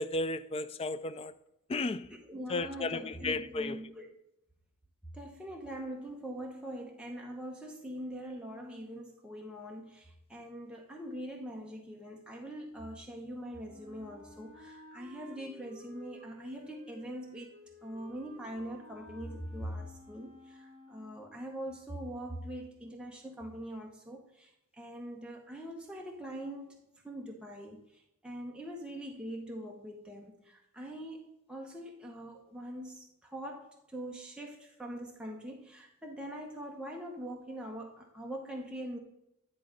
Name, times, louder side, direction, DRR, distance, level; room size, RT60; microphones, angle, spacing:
voice 1, 0.0-1.3 1.7-2.1 2.5-3.8, left 2 dB, 30° left, 0.4 m, -34 dB
voice 2, 2.1-4.1 5.1-17.5 17.8-39.0, equal, 5° right, 0.8 m, -43 dB
Wind instrument woodwind instrument, 13.6-21.3, left 1 dB, 40° right, 1.3 m, -54 dB
10.5 x 3.8 x 5.1 m
head